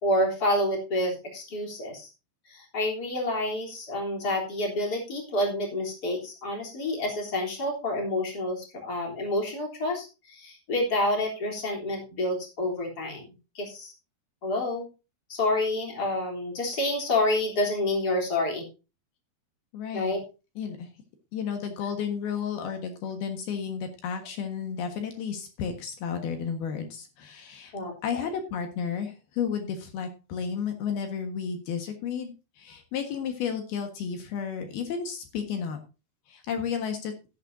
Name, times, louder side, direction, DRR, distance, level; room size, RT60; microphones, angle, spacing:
voice 1, 0.0-2.1 2.5-13.3 13.6-13.9 14.4-14.9 15.3-18.6 19.9-20.2 27.7-28.2, left 1 dB, 25° left, 1 dB, 3.7 m, -28 dB
voice 2, 19.7-20.2 20.6-20.9 21.3-27.7 28.0-35.8 36.3-37.1, left 7 dB, 70° left, 6 dB, 3.4 m, -32 dB
13.5 x 11.5 x 2.7 m, 0.30 s
omnidirectional pair, 4.7 m